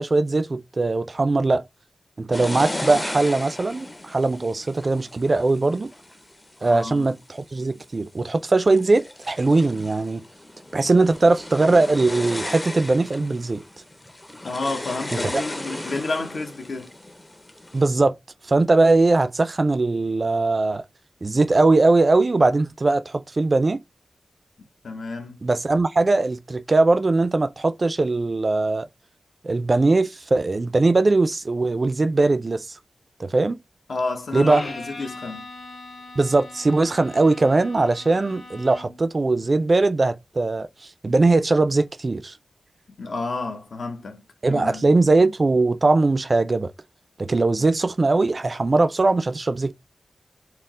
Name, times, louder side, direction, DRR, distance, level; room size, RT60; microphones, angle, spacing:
voice 1, 0.0-1.6 2.2-5.9 6.6-10.2 10.7-13.6 15.3-15.4 17.7-18.1 18.5-20.8 21.2-23.8 25.4-28.9 29.4-32.7 33.2-33.6 34.3-34.6 36.2-40.7 41.0-42.3 44.4-46.7 47.2-49.7, right 3 dB, 40° right, 0.3 m, -20 dB
sound 1, 2.3-7.1 7.7-8.2 8.6-17.9, left 1 dB, 20° left, 0.5 m, -36 dB
voice 2, 6.6-7.1 14.4-16.9 24.8-25.4 33.9-35.5 43.0-44.2 44.5-44.9, left 3 dB, 70° left, 0.8 m, -30 dB
Bowed string instrument, 34.4-39.1, left 2 dB, 85° left, 1.9 m, -40 dB
4.3 x 2.0 x 3.6 m
wide cardioid pair, 90°, 0 cm